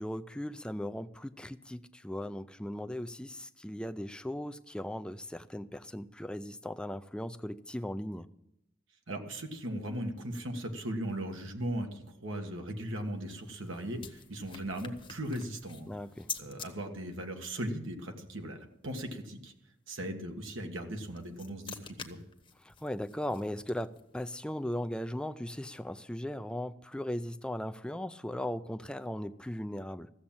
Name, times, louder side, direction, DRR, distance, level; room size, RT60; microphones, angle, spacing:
voice 1, 0.0-8.3 15.9-16.3 22.6-30.1, left 1 dB, 5° left, 0.4 m, -38 dB
voice 2, 9.1-15.9 16.4-19.5 19.9-22.2, right 1 dB, 80° right, 1.7 m, -38 dB
sound 1, 13.1-16.7 20.8-24.2, left 6 dB, 25° left, 1.1 m, -47 dB
14.5 x 7.4 x 8.8 m
head